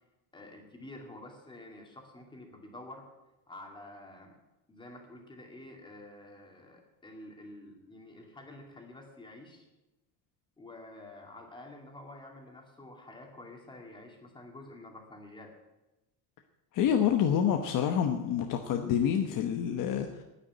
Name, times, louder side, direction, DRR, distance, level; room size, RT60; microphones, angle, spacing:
voice 1, 0.3-3.1 3.5-4.4 4.7-9.7 10.6-15.5, left 1 dB, 10° left, 1 dB, 2.3 m, -49 dB
voice 2, 16.7-20.2, left 8 dB, 50° left, 4 dB, 1.1 m, -27 dB
9.8 x 9.8 x 9.2 m, 1.0 s
cardioid pair, 165°, 42 cm